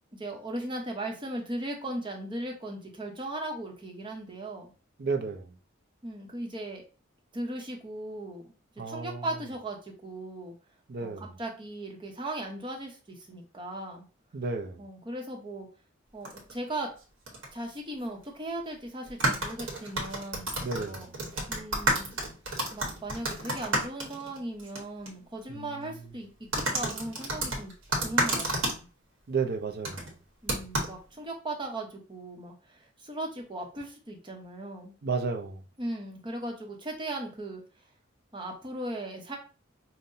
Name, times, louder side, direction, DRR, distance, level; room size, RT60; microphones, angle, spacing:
voice 1, 0.1-4.7 6.0-6.8 7.3-8.5 8.9-10.5 11.0-14.0 14.8-15.7 16.1-16.9 17.5-20.6 20.9-21.1 21.5-22.2 22.7-27.7 28.0-28.9 30.4-34.9 35.8-37.6 38.3-39.4, right 1 dB, 25° right, 0.8 m, -37 dB
voice 2, 5.0-5.6 8.8-9.3 10.9-11.3 14.3-14.9 20.6-21.2 25.5-25.9 29.3-30.1 35.0-35.6, right 4 dB, 55° right, 0.5 m, -33 dB
sound 1, 16.2-16.5 17.3-17.5 17.7-17.8 19.1-24.8 25.1-25.2 26.5-28.8 29.8-30.1 30.5-30.9, right 1 dB, 75° right, 1.2 m, -30 dB
5.5 x 2.1 x 2.6 m
head